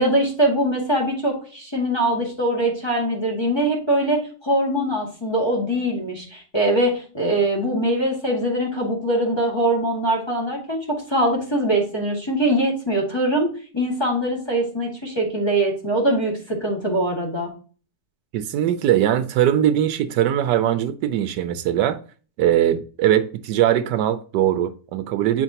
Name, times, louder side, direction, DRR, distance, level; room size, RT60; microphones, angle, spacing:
voice 1, 0.0-17.5, right 1 dB, 15° left, 1.7 m, -22 dB
voice 2, 18.3-22.0 22.4-25.4, right 11 dB, 80° right, 1.2 m, -20 dB
8.9 x 4.4 x 2.8 m
omnidirectional pair, 1.8 m